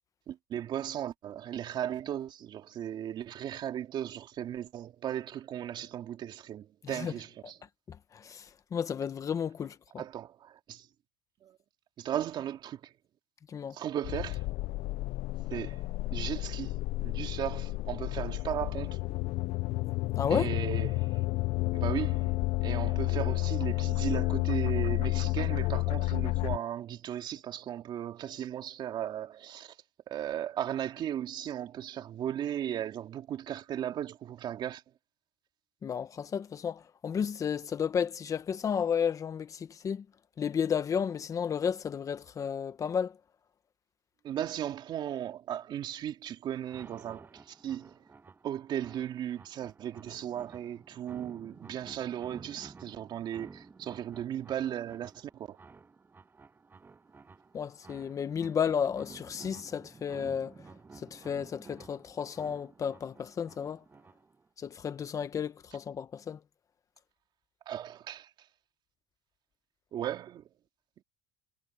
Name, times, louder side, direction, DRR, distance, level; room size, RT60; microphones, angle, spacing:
voice 1, 0.3-7.6 10.0-10.8 11.4-11.5 12.0-12.8 13.7-14.4 15.5-15.8 16.1-19.0 20.3-21.1 21.7-22.3 22.6-29.7 30.1-34.8 44.2-47.9 48.4-55.6 67.7-68.3 69.9-70.4, right 10 dB, 45° right, 2.6 m, -36 dB
voice 2, 7.9-8.4 8.7-10.0 13.5-13.7 20.2-20.5 35.8-40.0 40.4-43.1 57.5-60.5 61.0-63.8 64.6-66.4, left 7 dB, 30° left, 1.2 m, -32 dB
sound 1, 14.0-26.6, left 20 dB, 60° left, 0.7 m, -31 dB
sound 2, 46.6-64.5, right 4 dB, 20° right, 7.8 m, -53 dB
supercardioid pair, 120°, 11 cm